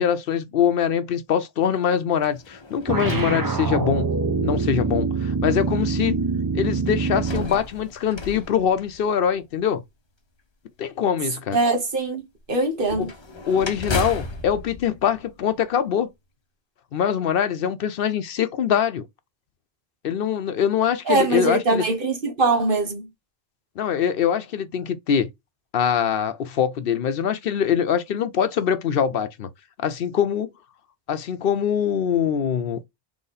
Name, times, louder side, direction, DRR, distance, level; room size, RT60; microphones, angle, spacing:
voice 1, 0.0-4.1 4.4-6.1 6.5-9.8 10.8-11.6 12.9-13.1 13.5-16.1 16.9-19.1 20.0-21.8 23.8-25.3 25.7-29.5 29.8-30.5 31.1-32.8, left 8 dB, 65° left, 0.8 m, -23 dB
sound 1, 2.2-4.2 4.9-5.0 6.9-9.5 12.8-15.9, left 2 dB, 30° left, 0.6 m, -35 dB
sound 2, 2.9-7.6, right 4 dB, 30° right, 0.4 m, -24 dB
voice 2, 11.5-12.2 12.5-13.1 21.1-23.1, right 3 dB, 60° right, 1.4 m, -22 dB
3.9 x 3.0 x 4.0 m
omnidirectional pair, 1.0 m